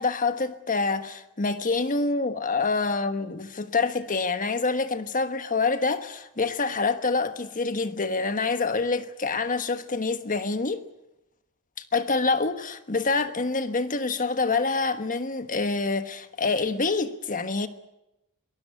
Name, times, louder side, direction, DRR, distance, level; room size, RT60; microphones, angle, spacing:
voice 1, 0.0-10.8 11.9-17.7, left 3 dB, 40° left, 1.3 m, -26 dB
23.0 x 19.5 x 8.4 m
head